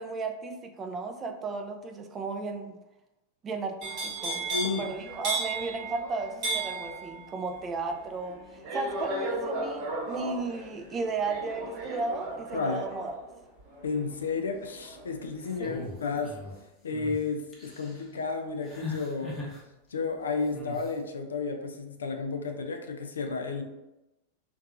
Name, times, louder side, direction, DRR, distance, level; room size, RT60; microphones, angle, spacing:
voice 1, 0.0-2.7 3.4-4.4 4.8-8.4 8.7-13.2 15.6-16.0, right 3 dB, 25° right, 5 dB, 0.4 m, -34 dB
sound 1, 3.8-15.8 16.1-16.5, right 2 dB, 45° right, 1.1 m, -35 dB
voice 2, 4.5-4.9 12.5-12.8 13.8-16.4 16.8-19.4 19.9-23.6, left 4 dB, 85° left, 4 dB, 0.3 m, -32 dB
sound 2, 15.6-16.5 16.9-17.2 17.5-18.0 18.7-19.6 20.5-20.9, left 3 dB, 25° left, 0.8 m, -39 dB
2.8 x 2.2 x 2.4 m, 0.97 s
hypercardioid pair, 100°, 0 cm